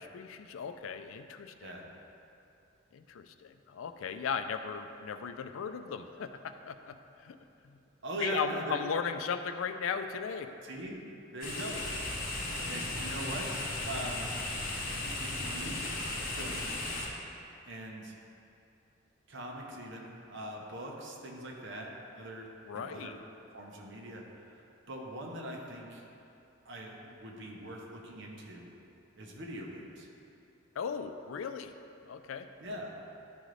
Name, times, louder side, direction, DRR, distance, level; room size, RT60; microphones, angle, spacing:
voice 1, 0.0-1.7 2.9-7.4 7.6-7.8 8.2-10.5 22.6-23.1 30.8-31.7 32.1-32.5, left 6 dB, 90° left, 8 dB, 0.4 m, -37 dB
voice 2, 8.0-8.8 10.6-11.0 11.3-13.5 13.8-14.3 15.0-15.9 16.3-16.8 17.7-18.2 19.3-22.5 22.7-23.2 23.5-24.2 24.9-26.0 26.6-28.7 29.2-30.1 32.6-32.9, right 1 dB, 65° right, -1 dB, 0.9 m, -41 dB
sound 1, 11.4-17.1, left 2 dB, 45° left, 1.0 m, -36 dB
10.5 x 3.8 x 3.2 m, 2.7 s
head